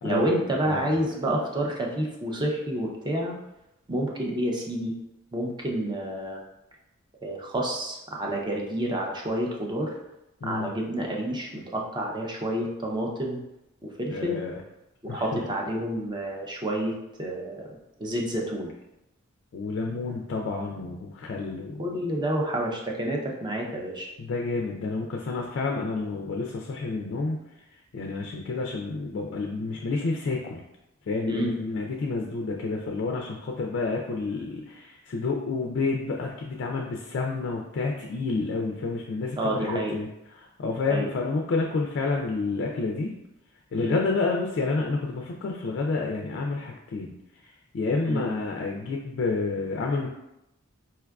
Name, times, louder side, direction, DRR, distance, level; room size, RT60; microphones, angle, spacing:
voice 1, 0.0-3.3 3.9-4.9 5.3-6.4 7.2-9.9 10.4-13.4 13.8-14.4 15.0-17.7 18.0-18.7 21.8-24.1 31.3-31.5 39.4-40.0 40.9-41.1 43.8-44.0 48.1-48.2, right 1 dB, 20° right, -1 dB, 0.5 m, -29 dB
voice 2, 0.7-1.0 10.4-10.7 14.1-14.5 15.1-15.4 19.5-21.8 24.2-27.4 27.9-30.6 31.1-43.1 43.7-47.1 47.4-50.1, left 3 dB, 55° left, 0 dB, 0.3 m, -29 dB
4.4 x 2.3 x 2.3 m, 0.89 s
head